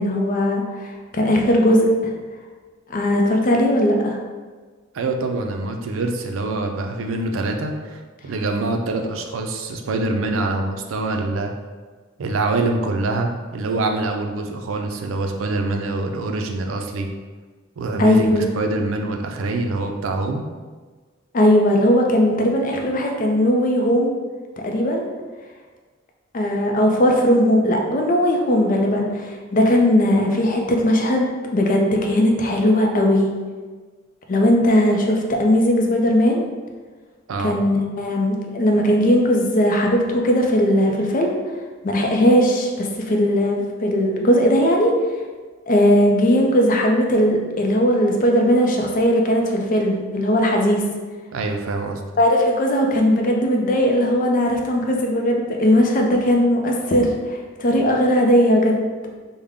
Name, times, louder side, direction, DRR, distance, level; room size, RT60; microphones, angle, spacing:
voice 1, 0.0-1.9 2.9-4.2 18.0-18.4 21.3-24.1 24.6-25.1 26.3-33.3 34.3-36.4 37.4-41.3 41.8-44.9 45.7-50.8 52.2-58.9, equal, 45° left, 1 dB, 0.5 m, -18 dB
voice 2, 4.9-11.5 12.2-17.1 17.8-20.4 37.3-37.6 51.3-52.0, right 2 dB, 85° right, 4 dB, 0.4 m, -25 dB
3.5 x 2.1 x 3.6 m, 1.4 s
head